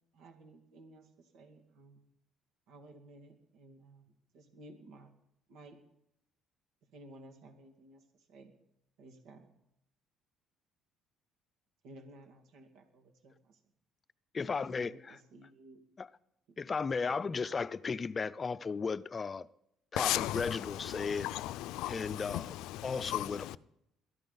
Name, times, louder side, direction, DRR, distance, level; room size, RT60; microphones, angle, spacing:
voice 1, 0.1-2.0 2.7-5.2 5.5-5.8 6.8-8.6 9.0-9.5 11.8-13.6 14.5-15.8 16.5-16.6 17.1-17.4, right 2 dB, 80° right, 2.2 m, -56 dB
voice 2, 14.3-14.9 16.6-19.5 19.9-21.3 21.9-22.4 22.8-23.6, left 5 dB, 30° left, 0.5 m, -35 dB
voice 3, 20.0-23.6, left 16 dB, 85° left, 0.5 m, -36 dB
22.0 x 13.5 x 4.0 m
cardioid pair, 115°, 0 cm